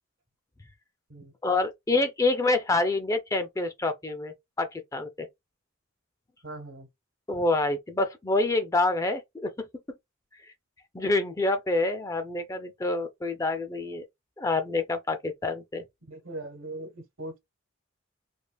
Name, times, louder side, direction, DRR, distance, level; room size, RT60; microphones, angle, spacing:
voice 1, 1.4-5.3 7.3-9.5 10.9-14.0 14.4-15.8, left 2 dB, 15° left, 0.4 m, -27 dB
voice 2, 6.4-6.9 16.0-17.4, right 2 dB, 75° right, 1.1 m, -40 dB
3.3 x 2.4 x 2.2 m
head